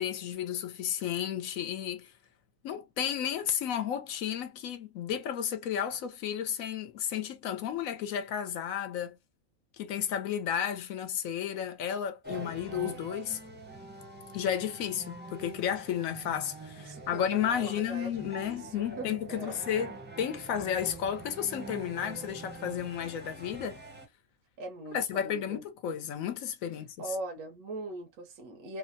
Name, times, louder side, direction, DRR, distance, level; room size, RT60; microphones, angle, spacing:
voice 1, 0.0-2.1 2.6-9.2 9.8-13.4 14.3-23.8 24.9-27.0, left 9 dB, 75° left, 1.0 m, -33 dB
sound 1, 12.2-24.1, right 3 dB, 10° right, 0.5 m, -45 dB
voice 2, 16.8-19.6 24.6-25.6 27.0-28.8, right 2 dB, 85° right, 1.1 m, -41 dB
3.1 x 2.1 x 2.5 m
omnidirectional pair, 1.5 m